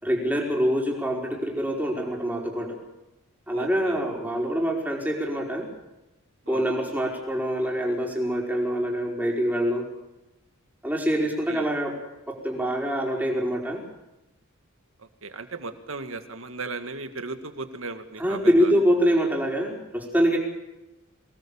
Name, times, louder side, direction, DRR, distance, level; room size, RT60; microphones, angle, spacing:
voice 1, 0.0-2.8 3.5-5.7 6.5-9.9 10.8-12.0 12.3-13.8 18.2-20.4, equal, 10° right, -1 dB, 4.8 m, -25 dB
voice 2, 3.5-4.0 6.5-6.7 11.5-11.7 15.0-18.7, right 3 dB, 65° right, 8 dB, 2.0 m, -36 dB
24.5 x 19.0 x 7.2 m, 0.98 s
head